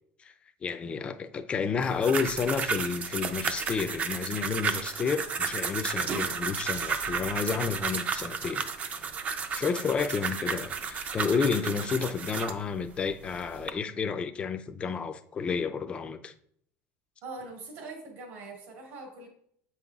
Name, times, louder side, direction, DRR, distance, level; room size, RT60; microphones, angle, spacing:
voice 1, 0.6-8.7 9.5-16.3, left 5 dB, 25° left, 0.4 m, -31 dB
sound 1, 1.8-12.6 13.2-13.7, right 5 dB, 30° right, 0.5 m, -33 dB
voice 2, 17.2-19.3, right 3 dB, 70° right, 2.5 m, -42 dB
7.6 x 5.5 x 2.4 m
cardioid pair, 135°, 5 cm